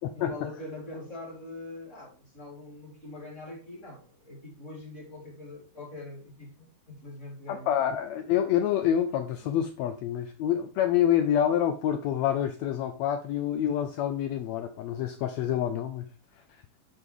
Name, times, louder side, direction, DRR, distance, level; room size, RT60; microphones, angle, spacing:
voice 1, 0.1-7.8, left 2 dB, 20° left, 3.9 m, -43 dB
voice 2, 7.5-16.1, left 10 dB, 85° left, 1.5 m, -27 dB
10.5 x 5.1 x 3.7 m
omnidirectional pair, 3.8 m